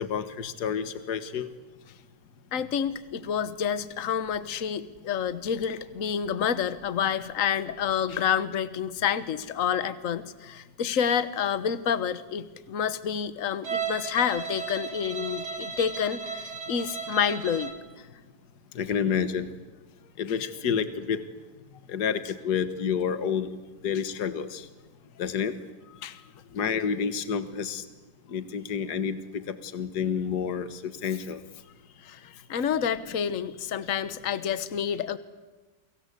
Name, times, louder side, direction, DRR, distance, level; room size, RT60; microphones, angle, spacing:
voice 1, 0.0-1.5 18.8-19.5 20.2-21.2 21.9-23.5 23.8-24.7 25.2-25.5 26.5-27.8 28.3-31.4, left 7 dB, 70° left, 11 dB, 1.9 m, -29 dB
voice 2, 2.5-17.7 26.0-26.2 32.0-35.2, left 8 dB, 50° left, 13 dB, 1.5 m, -28 dB
Bowed string instrument, 13.6-17.9, right 6 dB, 65° right, 3.2 m, -35 dB
30.0 x 24.0 x 8.3 m, 1.2 s
omnidirectional pair, 1.9 m